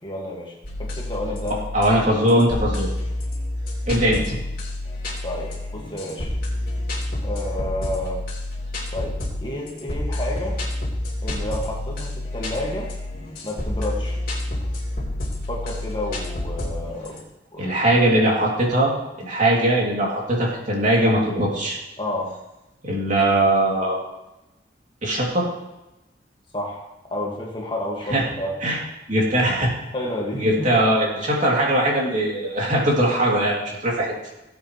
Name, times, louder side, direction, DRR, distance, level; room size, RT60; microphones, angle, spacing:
voice 1, 0.0-1.7 5.2-6.3 7.2-8.2 8.9-10.6 11.2-12.9 13.4-14.2 15.5-17.2 17.5-17.7 22.0-22.3 26.5-26.8 27.1-28.5 29.9-30.9, left 1 dB, 25° left, -2 dB, 1.9 m, -30 dB
sound 1, 0.6-17.2, left 1 dB, 50° left, 3.1 m, -29 dB
voice 2, 1.7-2.9 3.9-4.3 17.6-18.9 19.2-21.8 22.8-24.0 25.0-25.5 28.1-28.2 28.6-28.8 29.1-29.7 30.3-34.1, right 1 dB, 45° right, -3 dB, 2.9 m, -20 dB
18.0 x 8.2 x 3.2 m, 0.94 s
head